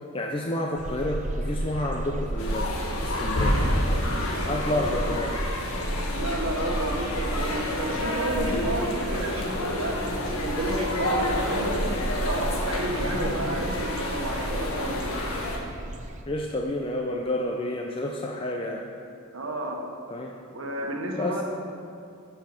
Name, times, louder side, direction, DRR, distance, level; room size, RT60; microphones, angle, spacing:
voice 1, 0.1-2.7 3.0-3.6 4.4-5.3 16.3-18.8 20.1-20.3 21.2-21.4, left 1 dB, 25° left, 0 dB, 0.6 m, -29 dB
sound 1, 0.8-16.2, right 1 dB, 35° right, 0.6 m, -34 dB
sound 2, 2.4-15.6, left 1 dB, 75° left, 1.4 m, -29 dB
voice 2, 4.7-5.0 6.1-11.7 12.2-15.0 19.3-19.8 20.5-21.4, right 1 dB, 65° right, 0 dB, 1.5 m, -31 dB
11.5 x 5.6 x 6.0 m, 2.4 s
head